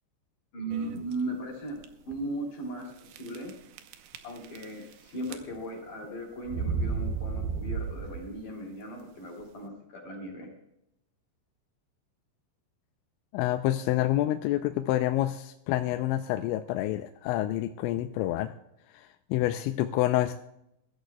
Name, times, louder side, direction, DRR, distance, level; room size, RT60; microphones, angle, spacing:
voice 1, 0.5-3.5 4.2-10.5, right 1 dB, 50° left, 0 dB, 4.2 m, -37 dB
sound 1, 0.7-1.1 1.8-1.9 2.1-2.2 3.1-3.5 3.8-4.9 5.2-5.8 6.5-8.4, right 5 dB, 75° right, 2.5 m, -33 dB
voice 2, 13.3-18.5 18.9-20.4, left 14 dB, 85° left, 7 dB, 2.9 m, -28 dB
23.5 x 13.0 x 2.3 m, 0.80 s
omnidirectional pair, 5.2 m